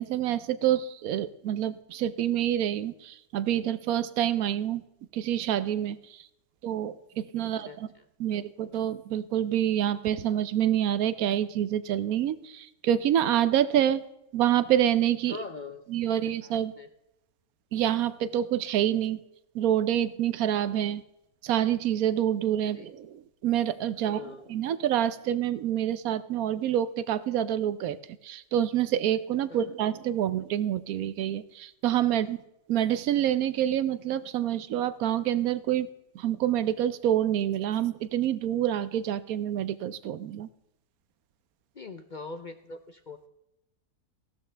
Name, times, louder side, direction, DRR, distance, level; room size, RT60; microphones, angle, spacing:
voice 1, 0.0-4.8 5.1-6.3 6.6-7.9 8.2-14.0 14.3-15.4 15.9-16.7 17.7-19.2 19.5-21.0 21.4-24.2 24.5-28.0 28.2-32.4 32.7-35.9 36.1-40.5, right 11 dB, 70° right, 15 dB, 1.0 m, -27 dB
voice 2, 7.4-8.0 15.3-15.9 16.1-16.9 22.6-22.9 24.0-24.5 29.5-29.6 32.1-32.4 41.7-43.3, left 4 dB, 55° left, 8 dB, 0.5 m, -43 dB
16.0 x 12.5 x 3.3 m, 0.88 s
omnidirectional pair, 1.6 m